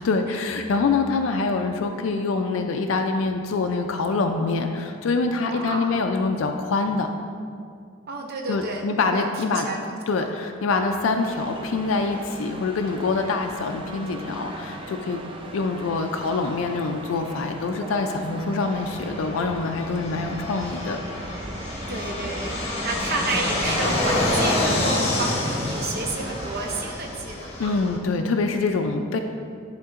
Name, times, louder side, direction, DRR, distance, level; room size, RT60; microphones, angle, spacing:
voice 1, 0.0-7.1 8.5-9.7 10.1-15.2 15.5-21.0 27.6-29.2, left 4 dB, 85° left, 5 dB, 0.4 m, -25 dB
voice 2, 5.4-5.9 8.1-9.8 10.1-10.3 21.9-27.8, right 2 dB, 55° right, 1 dB, 0.7 m, -31 dB
sound 1, 11.2-26.9, right 2 dB, 25° right, 0.5 m, -38 dB
Fixed-wing aircraft airplane, 18.7-28.0, left 1 dB, 35° left, 0.9 m, -28 dB
10.5 x 3.7 x 2.5 m, 2.2 s
head